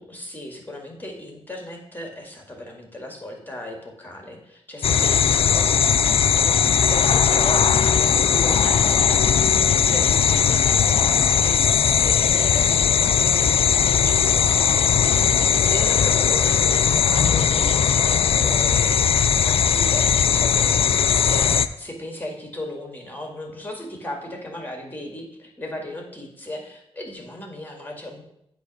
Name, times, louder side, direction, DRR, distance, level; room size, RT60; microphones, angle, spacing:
voice 1, 0.0-14.7 15.0-15.1 15.6-17.7 18.3-19.0 19.4-28.2, left 1 dB, 15° left, 1 dB, 2.0 m, -36 dB
sound 1, 4.8-21.7, left 8 dB, 60° left, 0.4 m, -19 dB
8.1 x 3.1 x 6.2 m, 0.76 s
cardioid pair, 65°, 11 cm